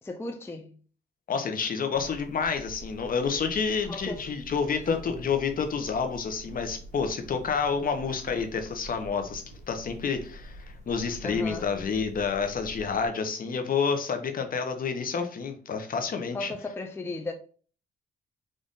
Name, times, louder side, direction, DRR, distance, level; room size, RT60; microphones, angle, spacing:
voice 1, 0.0-0.7 3.9-4.3 4.9-5.0 11.2-11.7 16.3-17.3, left 2 dB, 10° left, 0.4 m, -36 dB
voice 2, 1.3-16.5, left 5 dB, 45° left, 0.8 m, -29 dB
sound 1, 1.9-13.1, equal, 35° right, 1.4 m, -46 dB
3.9 x 2.5 x 3.5 m
cardioid pair, 90°, 20 cm